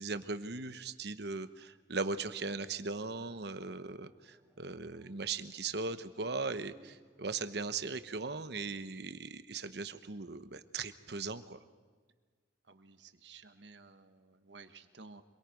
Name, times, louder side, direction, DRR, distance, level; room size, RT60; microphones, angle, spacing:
voice 1, 0.0-11.6, right 4 dB, 65° right, 11 dB, 1.1 m, -39 dB
sound 1, 3.0-8.5, equal, 5° right, 4.2 m, -66 dB
voice 2, 12.6-15.2, right 4 dB, 80° right, 9 dB, 1.4 m, -55 dB
26.5 x 22.5 x 5.3 m, 1.5 s
head